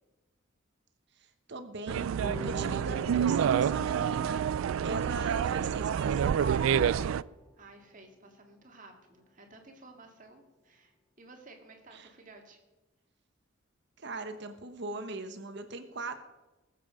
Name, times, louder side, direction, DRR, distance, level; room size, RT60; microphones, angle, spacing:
voice 1, 1.5-7.1 11.9-12.1 14.0-16.2, right 3 dB, 60° right, 8 dB, 1.0 m, -40 dB
sound 1, 1.9-7.2, right 8 dB, 90° right, 0.3 m, -28 dB
sound 2, 2.2-8.9, left 1 dB, 15° left, 0.8 m, -48 dB
voice 2, 7.5-12.6, right 2 dB, 40° right, 3 dB, 2.2 m, -54 dB
20.0 x 7.6 x 5.2 m, 1.1 s
head